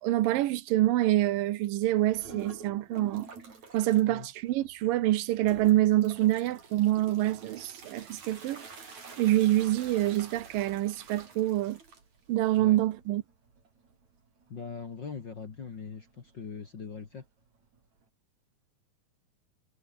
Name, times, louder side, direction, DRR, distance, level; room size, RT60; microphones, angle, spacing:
voice 1, 0.0-3.3 3.7-8.6 9.2-11.8 12.3-13.2, right 15 dB, 80° right, 2.7 m, -26 dB
sound 1, 2.1-4.0 4.5-4.9 5.4-18.0, right 5 dB, 55° right, 6.1 m, -49 dB
voice 2, 14.5-17.3, left 5 dB, 35° left, 2.3 m, -41 dB
omnidirectional pair, 4.0 m